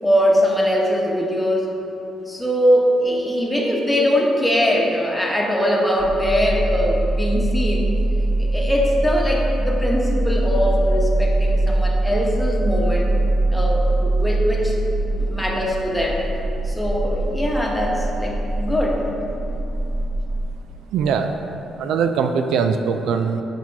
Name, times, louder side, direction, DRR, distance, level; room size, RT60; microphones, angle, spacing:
voice 1, 0.0-1.7 2.3-7.8 8.4-13.1 13.5-14.8 15.1-16.2 16.6-19.0, equal, 5° left, -2 dB, 1.2 m, -21 dB
sound 1, 6.0-20.4, right 2 dB, 50° right, 1.5 m, -22 dB
voice 2, 20.9-21.4 21.8-23.4, right 6 dB, 85° right, 7 dB, 0.4 m, -21 dB
7.6 x 4.4 x 4.6 m, 2.9 s
cardioid pair, 90°, 0 cm